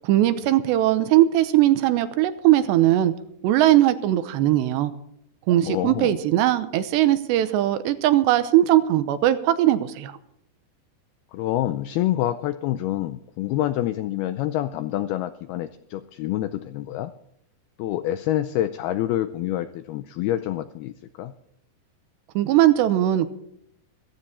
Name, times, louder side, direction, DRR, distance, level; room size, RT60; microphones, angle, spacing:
voice 1, 0.0-3.1 3.4-4.9 5.5-10.2 22.4-23.3, right 13 dB, 80° right, 12 dB, 3.0 m, -19 dB
voice 2, 5.7-6.2 11.3-17.1 17.8-21.3, left 13 dB, 85° left, 11 dB, 2.2 m, -27 dB
15.0 x 14.5 x 4.3 m, 0.75 s
omnidirectional pair, 5.1 m